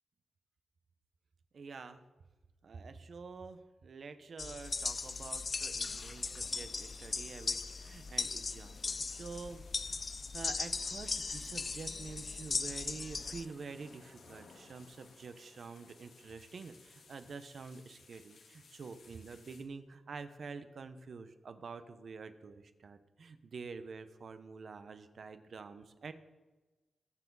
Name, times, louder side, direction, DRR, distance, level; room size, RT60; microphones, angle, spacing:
voice 1, 1.5-2.0 2.6-10.0 10.3-26.1, right 4 dB, 60° right, 10 dB, 1.0 m, -48 dB
sound 1, 4.4-13.4, left 4 dB, 45° left, 0.4 m, -38 dB
sound 2, 4.6-19.6, left 4 dB, 80° left, 1.7 m, -61 dB
21.0 x 7.1 x 4.0 m, 1.2 s
cardioid pair, 90°, 0 cm